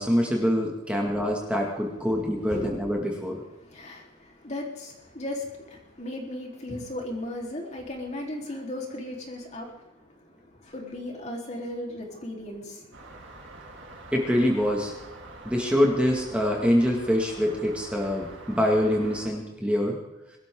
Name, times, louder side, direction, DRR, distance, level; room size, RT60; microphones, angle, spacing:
voice 1, 0.0-3.4 14.1-14.9 15.4-20.0, equal, 5° right, -1 dB, 2.1 m, -25 dB
voice 2, 3.6-9.7 10.6-12.8, left 1 dB, 35° left, 0 dB, 3.9 m, -36 dB
sound 1, 12.9-19.3, right 2 dB, 85° right, 4.5 m, -45 dB
22.5 x 13.5 x 3.8 m, 1.0 s
head